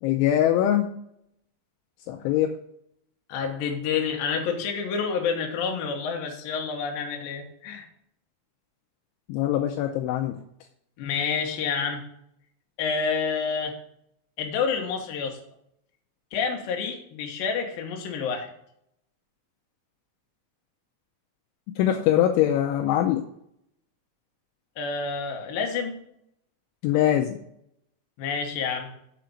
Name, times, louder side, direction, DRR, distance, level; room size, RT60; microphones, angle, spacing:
voice 1, 0.0-0.9 2.1-2.5 9.3-10.4 21.8-23.2 26.8-27.4, left 11 dB, 85° left, 4 dB, 2.8 m, -22 dB
voice 2, 3.3-7.9 11.0-12.0 12.8-13.7 14.4-15.4 16.3-18.5 24.8-26.0 28.2-28.9, left 6 dB, 70° left, 2 dB, 2.3 m, -28 dB
7.5 x 5.1 x 7.0 m, 0.72 s
omnidirectional pair, 5.9 m